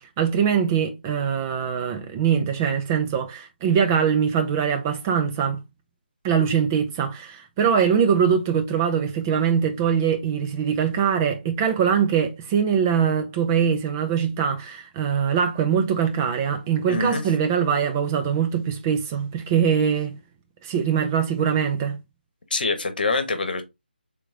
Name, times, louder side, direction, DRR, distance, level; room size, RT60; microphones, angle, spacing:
voice 1, 0.0-5.6 6.2-20.1 20.6-22.0, right 7 dB, 15° right, 0.3 m, -22 dB
voice 2, 16.9-17.2 22.5-23.6, left 3 dB, 55° left, 1.0 m, -25 dB
3.5 x 3.0 x 3.6 m
figure-of-eight pair, 150°, 6 cm